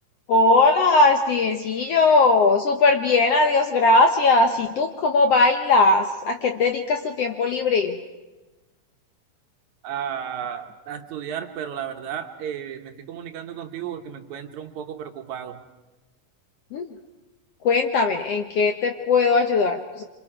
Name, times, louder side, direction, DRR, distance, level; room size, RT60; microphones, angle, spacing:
voice 1, 0.3-8.0 16.7-17.0 17.6-20.0, left 3 dB, 65° left, 5 dB, 1.6 m, -19 dB
voice 2, 9.8-15.6, right 9 dB, 65° right, 6 dB, 2.3 m, -33 dB
27.5 x 26.5 x 4.9 m, 1.1 s
omnidirectional pair, 3.8 m